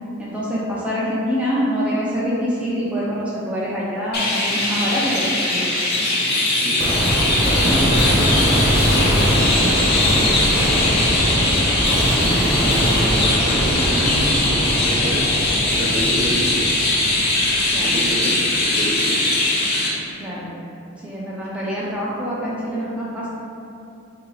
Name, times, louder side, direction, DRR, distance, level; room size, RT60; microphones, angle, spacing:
voice 1, 0.2-5.7 10.7-11.0 17.7-17.9 20.2-20.5 21.0-23.3, equal, 5° right, -8 dB, 0.6 m, -25 dB
Chirp tweet, 4.1-19.9, left 2 dB, 50° left, 0.7 m, -20 dB
voice 2, 6.6-7.1 7.5-9.9 12.2-16.7 17.8-19.3, right 1 dB, 45° right, -4 dB, 0.6 m, -28 dB
sound 1, 6.8-18.1, equal, 30° right, 1.1 m, -22 dB
3.7 x 2.8 x 3.9 m, 2.6 s
head